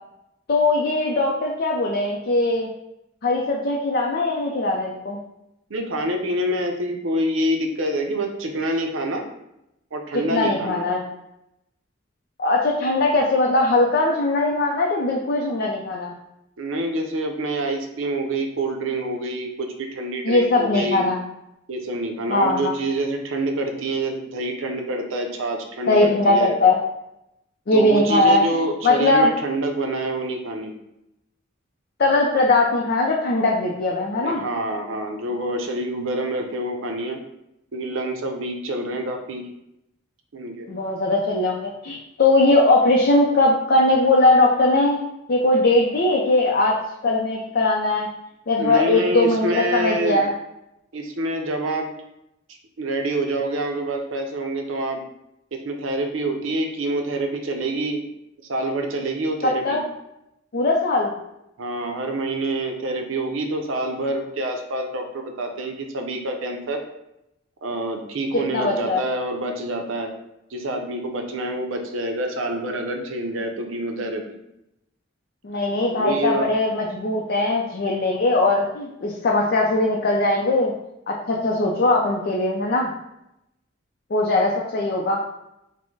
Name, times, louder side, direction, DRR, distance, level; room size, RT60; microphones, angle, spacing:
voice 1, 0.5-2.7 3.2-5.2 10.3-11.0 12.4-16.1 20.2-21.2 22.3-22.7 25.9-26.8 27.7-29.3 32.0-34.4 40.7-45.0 45.3-46.8 47.0-48.1 48.5-50.3 59.6-59.8 60.5-61.1 68.5-69.0 75.4-80.7 81.1-82.9 84.1-85.2, left 2 dB, 55° left, -2 dB, 0.5 m, -20 dB
voice 2, 5.7-9.2 9.9-10.9 16.6-21.1 21.7-26.6 27.7-30.7 34.2-37.2 37.7-39.4 40.3-40.7 48.6-50.2 50.9-51.9 52.8-55.0 55.5-58.0 58.5-59.8 61.6-66.8 67.6-70.1 70.5-74.4 75.9-76.5, right 1 dB, 85° right, 3 dB, 0.6 m, -26 dB
4.2 x 2.1 x 4.6 m, 0.85 s
head